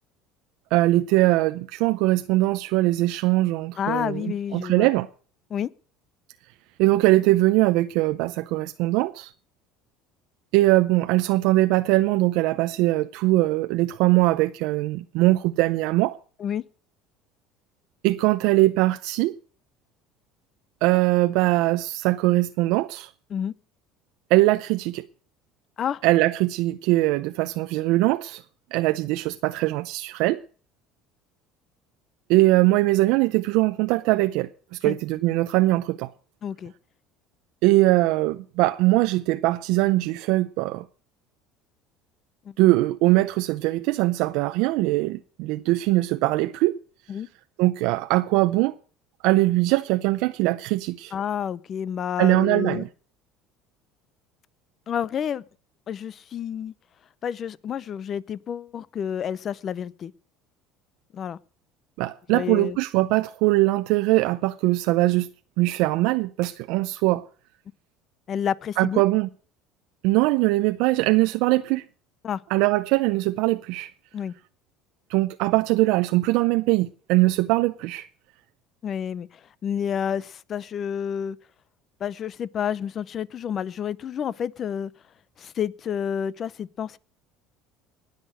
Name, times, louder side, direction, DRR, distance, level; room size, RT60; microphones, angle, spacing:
voice 1, 0.7-4.2 4.5-5.1 6.8-9.3 10.5-16.2 18.0-19.4 20.8-23.1 24.3-25.1 26.0-28.4 28.7-30.4 32.3-34.5 34.8-36.1 37.6-40.8 42.6-46.8 47.6-48.7 49.2-51.1 52.2-52.9 62.0-65.3 65.6-67.2 68.8-69.3 70.0-71.8 72.5-73.9 75.1-78.1, right 19 dB, 75° right, 0.6 m, -21 dB
voice 2, 3.8-4.9 5.5-5.7 16.4-16.6 23.3-23.5 25.8-26.0 34.8-35.0 36.4-36.7 42.4-42.5 47.1-47.3 51.1-52.8 54.9-55.4 55.9-56.7 57.2-60.1 61.1-61.4 62.3-62.8 68.3-69.0 72.2-72.4 74.1-74.3 78.8-79.3 79.6-81.4 82.0-84.9 85.4-87.0, left 8 dB, 40° left, 0.6 m, -29 dB
19.5 x 6.6 x 6.5 m
cardioid pair, 125°, 0 cm